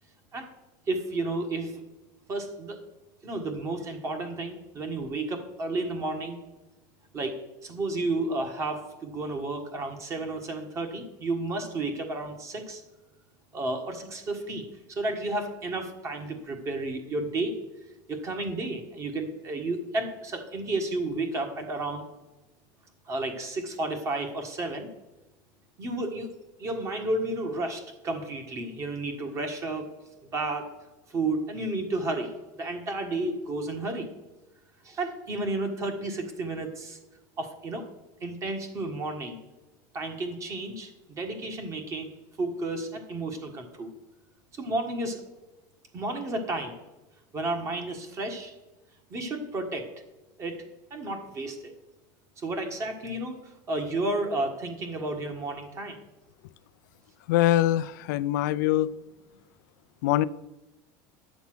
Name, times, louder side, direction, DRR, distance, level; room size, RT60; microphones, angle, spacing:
voice 1, 0.9-1.8 2.3-2.8 3.2-6.4 7.1-12.8 13.5-17.6 18.1-22.0 23.1-24.9 25.8-26.3 26.6-29.9 30.3-30.7 31.1-34.1 34.8-37.0 37.4-37.9 38.2-39.4 39.9-43.9 44.5-45.2 45.9-46.8 47.3-48.5 49.1-49.9 50.4-50.6 50.9-51.7 52.4-53.4 53.7-56.0, right 2 dB, 30° right, 1.6 m, -32 dB
voice 2, 57.3-58.9 60.0-60.3, left 14 dB, 85° left, 0.4 m, -23 dB
10.5 x 7.1 x 6.2 m
supercardioid pair, 145°, 10 cm